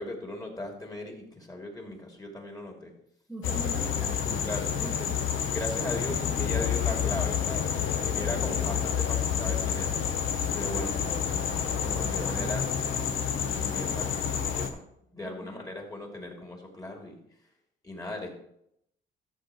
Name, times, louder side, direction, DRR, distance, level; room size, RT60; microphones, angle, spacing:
voice 1, 0.0-2.9 3.8-3.9 4.3-5.1 5.5-7.7 8.0-9.9 10.5-11.0 11.8-12.6 13.7-14.1 14.5-14.8 15.1-17.2 17.8-18.3, left 1 dB, 20° left, 1 dB, 2.9 m, -38 dB
voice 2, 3.3-5.1 8.4-8.8 10.7-11.3 11.9-14.2 15.3-15.6, right 1 dB, ahead, -2 dB, 1.2 m, -44 dB
sound 1, 3.4-14.7, left 8 dB, 90° left, 1.0 m, -29 dB
13.5 x 7.1 x 3.1 m, 0.74 s
cardioid pair, 90°, 20 cm